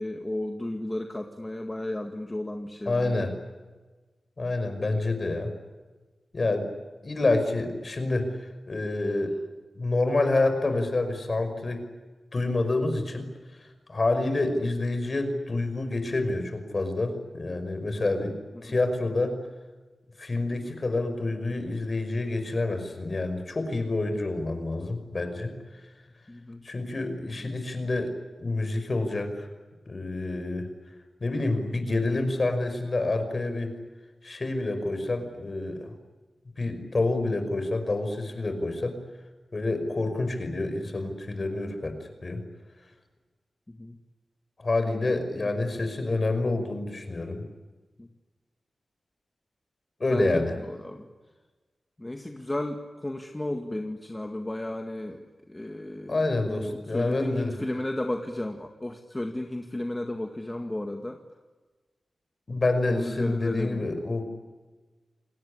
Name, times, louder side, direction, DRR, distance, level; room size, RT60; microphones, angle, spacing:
voice 1, 0.0-3.3 7.2-7.3 18.6-18.8 26.3-26.6 43.7-44.0 45.4-45.5 48.0-48.1 50.1-51.1 52.0-61.2 62.9-63.9, left 1 dB, 15° left, 4 dB, 2.0 m, -34 dB
voice 2, 2.9-3.3 4.4-5.5 6.3-6.7 7.0-8.3 8.7-9.3 9.8-11.9 12.3-13.3 13.9-18.4 18.6-19.3 20.2-25.5 26.6-28.1 28.4-29.5 29.9-30.7 31.2-33.7 34.2-35.9 36.6-39.0 39.5-41.9 42.2-42.4 44.6-47.5 50.0-50.6 56.1-57.5 62.5-64.3, left 2 dB, 40° left, 8 dB, 5.5 m, -28 dB
28.5 x 19.5 x 10.0 m, 1.3 s
wide cardioid pair, 95°, 0 cm